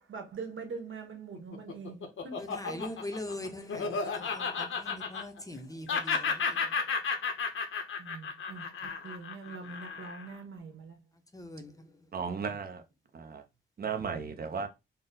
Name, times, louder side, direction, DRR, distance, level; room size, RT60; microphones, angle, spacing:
voice 1, 0.1-2.3 2.7-2.8 8.0-11.0, right 4 dB, 75° right, 1.1 m, -43 dB
Laughter, 1.3-5.6 5.9-10.3, left 5 dB, 80° left, 0.8 m, -33 dB
voice 2, 2.4-6.6 11.3-11.7, left 1 dB, 15° left, 0.6 m, -42 dB
voice 3, 12.1-12.8 13.1-13.4 13.8-14.7, right 6 dB, 50° right, 0.7 m, -35 dB
4.0 x 2.1 x 3.9 m
wide cardioid pair, 135°, 20 cm